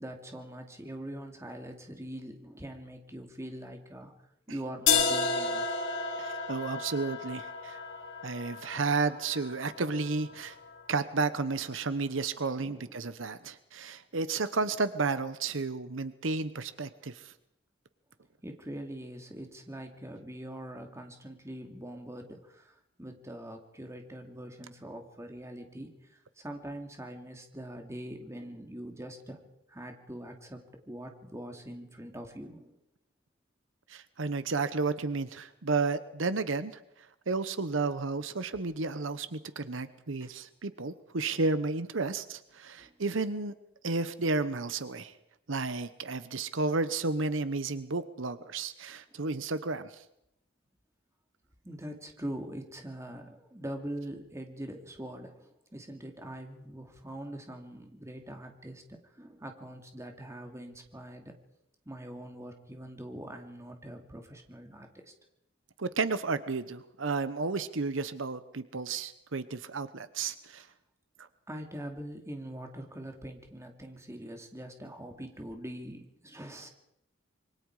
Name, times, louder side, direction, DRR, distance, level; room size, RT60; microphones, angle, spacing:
voice 1, 0.0-4.1 4.5-5.8 9.7-9.8 12.6-13.1 18.4-29.4 29.7-32.8 40.2-40.3 41.3-41.4 42.8-42.9 51.6-61.3 61.9-65.1 71.5-76.7, right 1 dB, 15° right, 3 dB, 2.6 m, -43 dB
sound 1, 4.9-10.8, left 5 dB, 65° left, 4.8 m, -32 dB
voice 2, 6.2-7.8 8.2-10.6 10.9-17.3 33.9-36.8 37.3-43.5 43.8-45.1 45.5-50.0 65.8-70.7, right 3 dB, 75° right, 13 dB, 1.0 m, -32 dB
26.5 x 24.0 x 4.9 m, 0.80 s
head